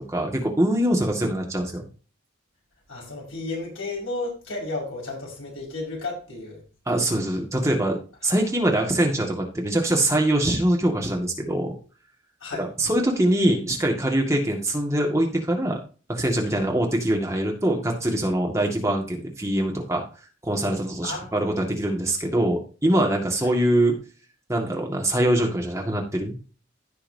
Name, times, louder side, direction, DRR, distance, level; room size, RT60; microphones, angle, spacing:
voice 1, 0.1-1.9 6.9-11.7 12.6-15.8 16.1-20.0 20.4-24.0 24.5-26.3, right 1 dB, 15° right, 1 dB, 1.9 m, -23 dB
voice 2, 2.9-6.6 12.4-12.7 16.5-16.7 21.0-21.4 23.4-23.5, left 2 dB, 80° left, -3 dB, 5.4 m, -33 dB
16.0 x 5.7 x 2.8 m, 0.36 s
head